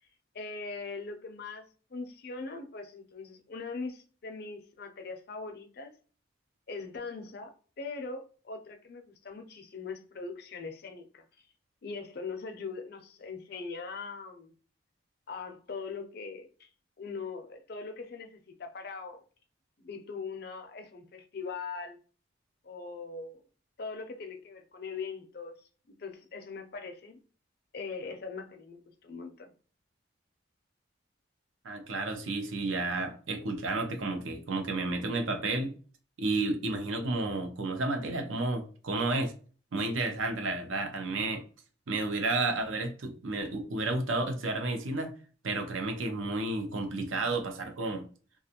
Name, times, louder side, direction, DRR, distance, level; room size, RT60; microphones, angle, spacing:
voice 1, 0.3-1.6 1.9-5.9 6.7-11.2 11.8-14.5 15.3-16.7 17.0-19.2 19.8-22.0 22.6-23.4 23.8-25.7 26.0-27.2 27.7-29.5, left 4 dB, 50° left, 0.5 m, -41 dB
voice 2, 31.6-35.8 36.2-39.3 39.7-41.4 41.9-45.1 45.4-48.0, right 2 dB, 85° right, 0.6 m, -31 dB
2.5 x 2.3 x 2.8 m
head